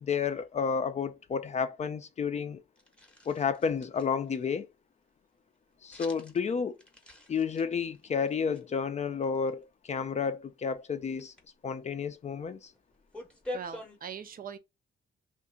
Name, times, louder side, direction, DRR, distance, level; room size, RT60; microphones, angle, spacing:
voice 1, 0.0-2.6 3.3-4.7 5.8-6.8 7.3-11.3 11.6-12.7, left 6 dB, 35° left, 0.4 m, -31 dB
sound 1, 2.8-4.4 5.9-6.5 6.8-8.6 9.2-9.5 11.0-11.5 12.3-12.4 12.7-14.0, left 2 dB, 5° left, 0.8 m, -45 dB
voice 2, 13.5-14.6, right 7 dB, 45° right, 0.5 m, -41 dB
2.8 x 2.5 x 3.7 m
cardioid pair, 90°, 20 cm